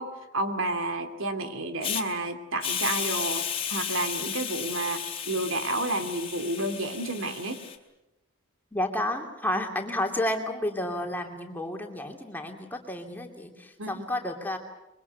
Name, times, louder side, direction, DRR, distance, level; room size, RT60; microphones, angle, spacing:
voice 1, 0.0-7.6 9.5-9.6 13.8-14.1, right 2 dB, 70° right, 8 dB, 2.6 m, -31 dB
Hiss, 1.8-2.0 2.6-7.8, left 8 dB, 25° left, 2.6 m, -33 dB
voice 2, 8.7-14.6, left 1 dB, 10° left, 3 dB, 2.7 m, -31 dB
25.5 x 23.5 x 8.2 m, 0.94 s
head